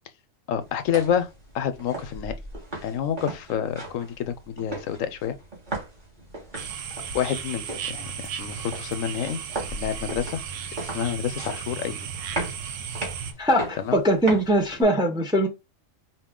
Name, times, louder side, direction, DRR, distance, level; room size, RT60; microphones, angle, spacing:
voice 1, 0.5-1.3 1.5-2.4 2.8-5.4 7.1-9.4 9.7-10.4 10.8-12.1 13.8-14.0, left 9 dB, 75° left, 1.0 m, -28 dB
sound 1, 0.6-14.8, right 1 dB, 35° right, 1.9 m, -38 dB
sound 2, 6.5-13.3, right 7 dB, 70° right, 1.0 m, -35 dB
voice 2, 13.4-15.5, right 1 dB, 5° right, 0.5 m, -21 dB
4.7 x 2.7 x 3.6 m
omnidirectional pair, 1.4 m